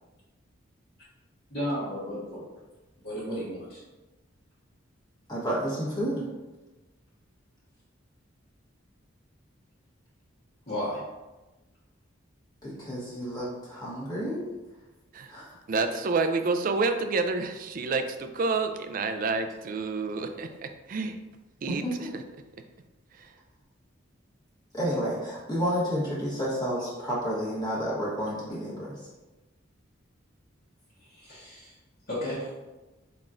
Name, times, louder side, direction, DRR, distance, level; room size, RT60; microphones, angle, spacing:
voice 1, 1.5-2.4 3.0-3.8 10.7-11.0 31.0-31.8 32.1-32.5, equal, 55° left, -11 dB, 1.2 m, -33 dB
voice 2, 5.3-6.2 12.6-14.5 15.3-15.4 21.7-22.1 24.7-29.0, equal, 20° left, -7 dB, 1.1 m, -30 dB
voice 3, 15.7-21.2 21.6-21.8 22.1-22.2 23.2-23.3, right 3 dB, 45° right, 7 dB, 0.3 m, -28 dB
4.3 x 4.0 x 2.5 m, 1.1 s
head